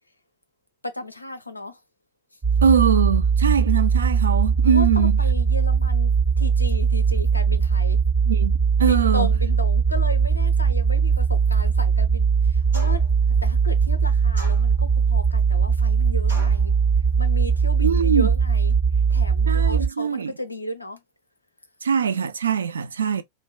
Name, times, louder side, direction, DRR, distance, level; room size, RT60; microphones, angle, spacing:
voice 1, 0.8-1.8 4.7-8.0 8.8-13.0 13.4-16.7 17.2-21.0, left 2 dB, 85° left, 0.5 m, -34 dB
sound 1, 2.4-19.9, right 6 dB, 25° right, 0.7 m, -20 dB
voice 2, 2.6-5.2 8.3-9.3 17.8-18.3 19.5-20.3 21.8-23.2, right 7 dB, 70° right, 0.4 m, -22 dB
sound 2, 12.7-13.2 14.4-15.0 16.3-16.7, left 1 dB, 85° right, 1.6 m, -39 dB
3.2 x 2.1 x 2.2 m
figure-of-eight pair, 90°, 0 cm